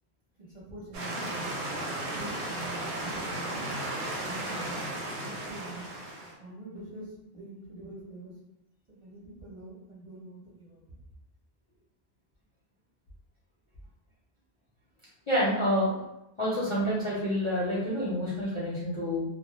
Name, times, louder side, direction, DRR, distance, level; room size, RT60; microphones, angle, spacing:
voice 1, 0.4-1.6 2.1-3.7 4.2-5.9 6.4-8.3 8.9-10.8, right 2 dB, 30° right, -9 dB, 0.8 m, -45 dB
sound 1, 0.9-6.3, right 1 dB, 90° right, 0.9 m, -35 dB
voice 2, 15.3-16.0 16.4-19.2, equal, 40° left, -9 dB, 0.5 m, -28 dB
2.1 x 2.1 x 2.9 m, 0.89 s
omnidirectional pair, 1.1 m